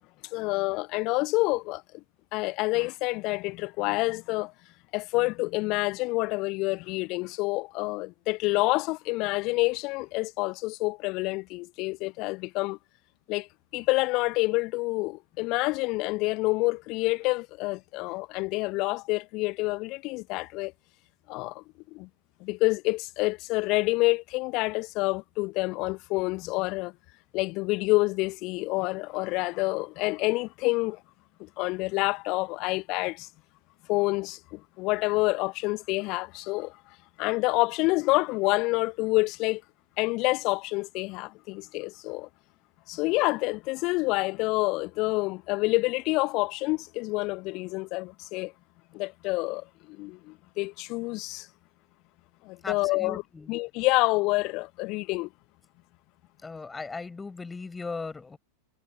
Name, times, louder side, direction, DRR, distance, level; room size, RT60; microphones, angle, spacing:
voice 1, 0.3-2.0 2.3-4.5 4.9-12.8 13.3-13.5 13.7-20.7 21.3-21.6 21.9-22.1 22.4-26.9 27.3-31.0 31.4-33.3 33.9-36.7 37.2-39.6 40.0-42.3 42.9-48.5 48.9-51.5 52.4-53.2 53.5-55.3, left 23 dB, 40° left, 0.7 m, -28 dB
voice 2, 52.6-53.6 56.4-58.4, left 4 dB, 10° left, 4.9 m, -38 dB
figure-of-eight pair, 90°, 0 cm